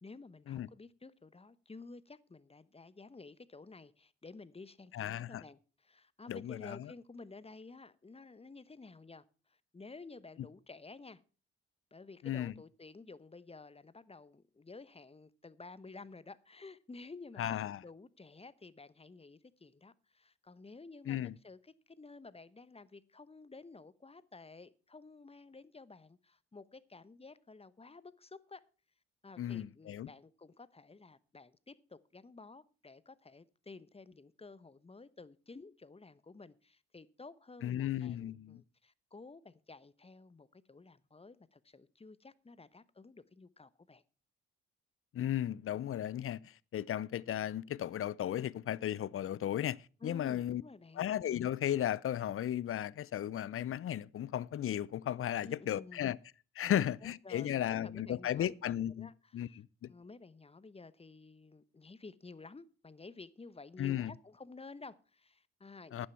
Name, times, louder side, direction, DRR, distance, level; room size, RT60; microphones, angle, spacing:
voice 1, 0.0-11.2 11.9-28.6 29.2-44.0 50.0-51.1 55.4-56.2 56.7-58.5 59.0-59.6 59.9-66.1, left 3 dB, 20° left, 0.9 m, -53 dB
voice 2, 4.9-5.4 6.3-6.9 12.2-12.5 17.4-17.8 21.1-21.3 29.4-30.1 37.6-38.6 45.1-49.8 50.0-50.6 51.0-56.2 56.6-59.9 63.8-64.1 65.9-66.1, left 11 dB, 45° left, 0.6 m, -35 dB
11.0 x 9.6 x 5.6 m
hypercardioid pair, 40°, 32 cm